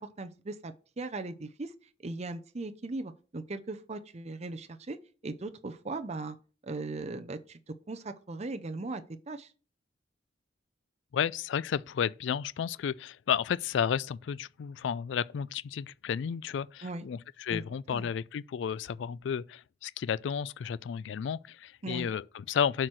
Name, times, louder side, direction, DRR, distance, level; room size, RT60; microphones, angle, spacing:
voice 1, 0.0-1.7 2.0-5.0 5.2-6.4 6.6-7.6 7.9-9.5 16.8-17.1 17.5-17.6 17.9-18.1 21.8-22.1, right 2 dB, 35° right, 0.6 m, -38 dB
voice 2, 11.1-22.9, left 8 dB, 65° left, 0.3 m, -32 dB
7.7 x 4.5 x 6.2 m
head